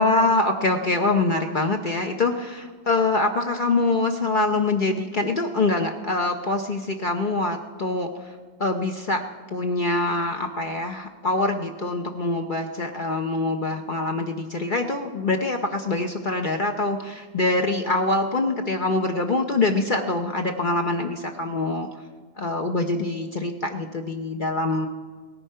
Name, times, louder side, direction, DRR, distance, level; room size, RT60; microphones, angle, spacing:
voice 1, 0.0-8.3 8.6-9.2 9.5-21.9 22.4-24.9, left 2 dB, 85° left, 3 dB, 0.4 m, -24 dB
18.0 x 14.0 x 5.6 m, 1.5 s
omnidirectional pair, 2.1 m